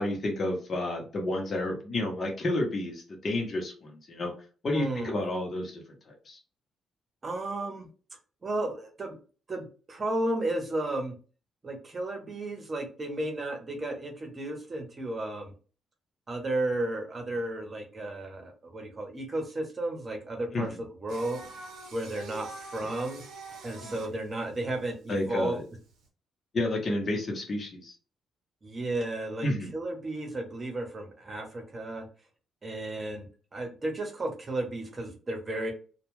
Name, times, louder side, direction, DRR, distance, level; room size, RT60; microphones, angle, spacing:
voice 1, 0.0-4.3 4.6-6.4 20.5-20.8 23.8-23.9 25.1-25.6 26.5-27.9 29.4-29.7, left 1 dB, 40° left, 0 dB, 0.8 m, -31 dB
voice 2, 4.7-5.2 7.2-7.9 8.4-9.2 9.5-11.1 11.6-15.5 16.3-20.7 21.0-21.4 21.9-23.2 23.6-25.6 28.6-32.1 32.6-35.7, right 2 dB, 30° right, 2 dB, 0.9 m, -33 dB
Singing, 21.1-26.0, right 2 dB, 85° right, 0.7 m, -45 dB
2.3 x 2.2 x 3.1 m, 0.37 s
cardioid pair, 90°, 0 cm